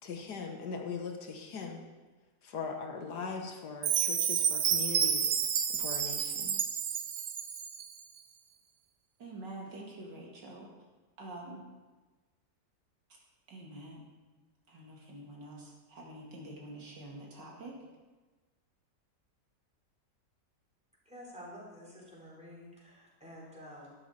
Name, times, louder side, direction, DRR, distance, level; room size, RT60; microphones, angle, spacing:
voice 1, 0.0-1.8 2.4-6.6, left 5 dB, 65° left, 3 dB, 1.7 m, -40 dB
Chime, 3.8-7.9, right 8 dB, 60° right, 1.1 m, -30 dB
voice 2, 9.2-10.7 11.2-11.6 13.5-14.1 14.7-17.8, right 2 dB, 80° right, -2 dB, 3.0 m, -46 dB
voice 3, 21.0-24.0, equal, 5° right, -6 dB, 4.3 m, -50 dB
12.5 x 12.0 x 4.3 m, 1.2 s
omnidirectional pair, 1.9 m